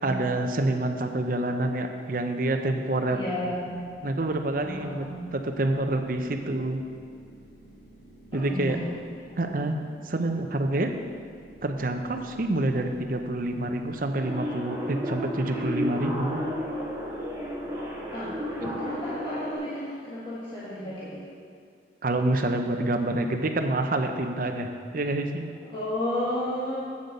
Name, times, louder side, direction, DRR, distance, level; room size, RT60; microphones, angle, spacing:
voice 1, 0.0-3.2 4.0-5.1 5.3-6.8 8.3-8.8 9.4-9.8 10.0-10.9 11.6-16.4 22.0-25.5, right 2 dB, 50° right, 6 dB, 0.7 m, -27 dB
sound 1, 3.1-19.3, right 2 dB, 55° left, 1.4 m, -51 dB
voice 2, 3.1-3.7 4.6-5.1 8.3-8.8 18.1-21.3 25.6-26.8, left 1 dB, 30° left, -9 dB, 1.6 m, -32 dB
sound 2, 14.2-19.5, equal, 20° right, 1.7 m, -32 dB
8.7 x 7.8 x 5.3 m, 2.2 s
head